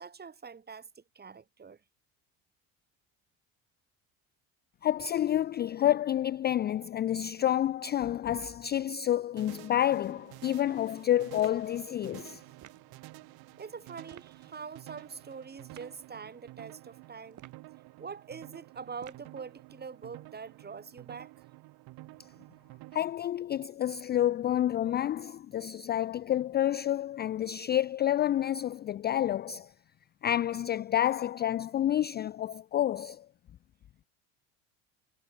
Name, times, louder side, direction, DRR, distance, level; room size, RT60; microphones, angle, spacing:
voice 1, 0.0-1.8 13.6-17.4 18.0-21.3, right 5 dB, 25° right, 3.0 m, -44 dB
voice 2, 4.8-12.4 22.9-29.7 30.2-33.2, left 11 dB, 25° left, 0.4 m, -29 dB
sound 1, 9.4-23.0, right 20 dB, 60° right, 1.4 m, -51 dB
sound 2, 11.4-11.7 12.6-12.9 14.1-14.4 15.7-15.9 17.3-17.7 19.0-19.4, right 11 dB, 45° right, 4.2 m, -52 dB
supercardioid pair, 110°, 41 cm